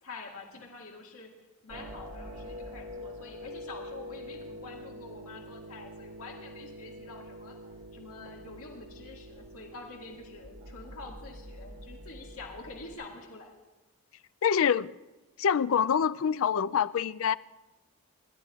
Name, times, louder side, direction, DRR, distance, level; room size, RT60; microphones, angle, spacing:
voice 1, 0.0-1.3 1.6-7.6 7.9-13.6, left 3 dB, 80° left, 2.0 m, -47 dB
sound 1, 1.7-12.9, equal, 85° right, 2.1 m, -45 dB
voice 2, 14.4-14.9 15.4-17.4, left 7 dB, 65° left, 0.4 m, -25 dB
27.0 x 12.0 x 2.4 m
head